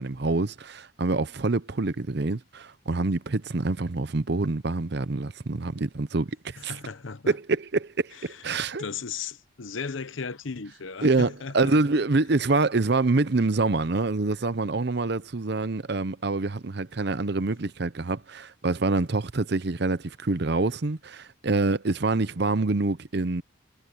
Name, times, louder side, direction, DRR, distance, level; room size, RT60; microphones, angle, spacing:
voice 1, 0.0-6.8 7.3-8.1 8.4-8.8 11.0-23.4, right 3 dB, 55° right, 0.7 m, -26 dB
voice 2, 6.6-7.4 8.3-8.4 8.8-11.8, left 5 dB, 75° left, 0.9 m, -36 dB
head